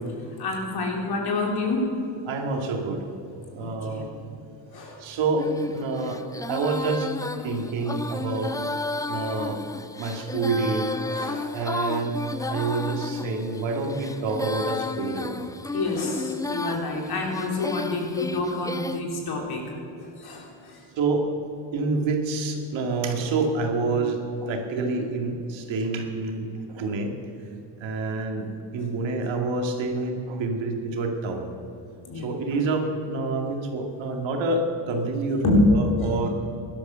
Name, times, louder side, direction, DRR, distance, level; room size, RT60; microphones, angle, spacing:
voice 1, 0.3-2.0 3.6-4.1 4.7-5.0 10.9-11.6 15.7-20.9 32.1-32.3 35.4-35.7, left 2 dB, 55° left, 0 dB, 3.8 m, -28 dB
voice 2, 2.3-3.1 3.5-4.1 5.0-6.2 6.5-7.1 7.4-8.5 9.1-9.6 10.0-10.9 11.5-12.1 12.5-15.3 21.0-21.3 21.7-27.1 27.8-28.5 28.7-31.5 32.2-36.3, right 3 dB, 75° right, 3 dB, 2.4 m, -27 dB
Female singing, 5.4-19.0, left 3 dB, 10° left, 0.4 m, -33 dB
17.0 x 12.0 x 6.9 m, 2.7 s
cardioid pair, 130°, 46 cm